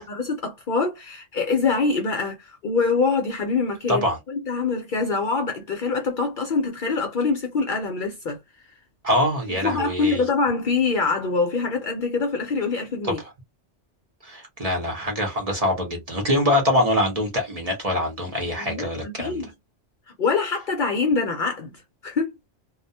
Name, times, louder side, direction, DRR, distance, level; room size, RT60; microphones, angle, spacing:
voice 1, 0.0-8.4 9.6-13.2 18.6-19.5 20.2-21.7 22.0-22.3, left 4 dB, 55° left, 0.6 m, -24 dB
voice 2, 9.0-10.2 13.0-13.1 14.2-19.4, left 1 dB, 40° right, 0.7 m, -24 dB
2.2 x 2.1 x 2.6 m
omnidirectional pair, 1.2 m